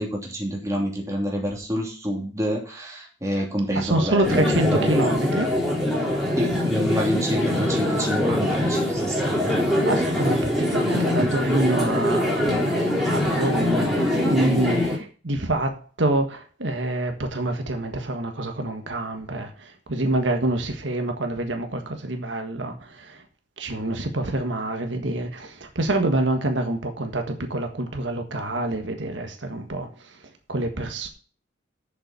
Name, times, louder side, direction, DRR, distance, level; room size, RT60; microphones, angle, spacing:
voice 1, 0.0-4.4 4.7-5.0 6.4-9.6, equal, 15° right, 2.9 m, -28 dB
voice 2, 3.7-5.5 9.8-23.2 23.6-30.2 30.5-31.1, right 2 dB, 85° right, 1.6 m, -26 dB
sound 1, 4.2-15.0, left 1 dB, ahead, 4.0 m, -23 dB
7.4 x 7.0 x 6.9 m
head